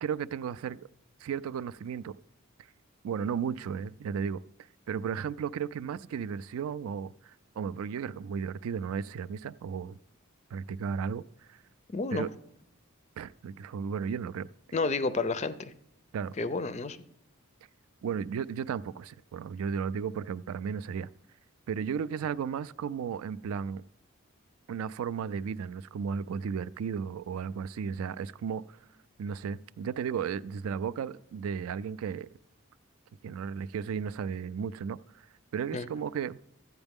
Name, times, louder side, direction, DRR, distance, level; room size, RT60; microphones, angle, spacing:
voice 1, 0.0-0.9 1.2-2.2 3.0-4.4 4.9-10.0 10.5-11.2 11.5-11.6 12.1-12.3 13.2-14.5 16.1-16.3 18.0-21.1 21.7-23.8 24.7-28.8 29.2-32.3 33.2-35.0 35.5-36.4, right 7 dB, 80° right, 0.3 m, -34 dB
voice 2, 11.9-12.3 14.7-15.7 16.4-17.0 35.7-35.9, left 3 dB, 30° left, 0.4 m, -30 dB
13.5 x 8.0 x 3.5 m
head